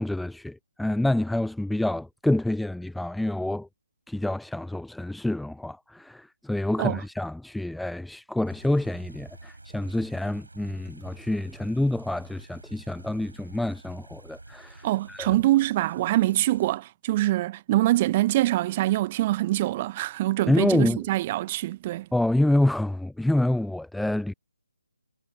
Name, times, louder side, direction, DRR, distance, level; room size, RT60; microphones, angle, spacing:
voice 1, 0.0-3.7 4.1-15.3 20.5-21.0 22.1-24.3, left 1 dB, ahead, 0.5 m, -27 dB
sound 1, 8.5-16.8, right 2 dB, 70° right, 6.7 m, -48 dB
voice 2, 14.8-22.1, right 16 dB, 25° right, 1.3 m, -24 dB
figure-of-eight pair, 145°, 0 cm